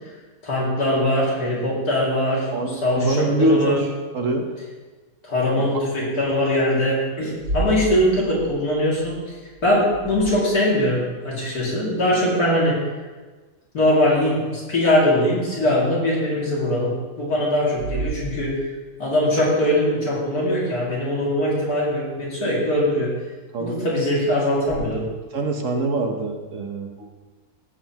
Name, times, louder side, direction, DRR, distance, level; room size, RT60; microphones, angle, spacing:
voice 1, 0.4-3.8 5.2-9.4 9.6-12.8 13.7-18.6 19.0-23.1 23.6-25.1, left 1 dB, 70° left, -6 dB, 3.1 m, -21 dB
voice 2, 2.5-3.8 4.1-4.4 23.5-23.8 25.3-27.1, right 2 dB, 55° right, 3 dB, 1.4 m, -23 dB
sound 1, 7.3-10.9 15.3-15.4 16.3-16.4 17.7-19.0 24.6-24.7, right 3 dB, 90° right, 3.2 m, -33 dB
16.5 x 7.8 x 3.0 m, 1.3 s
omnidirectional pair, 1.7 m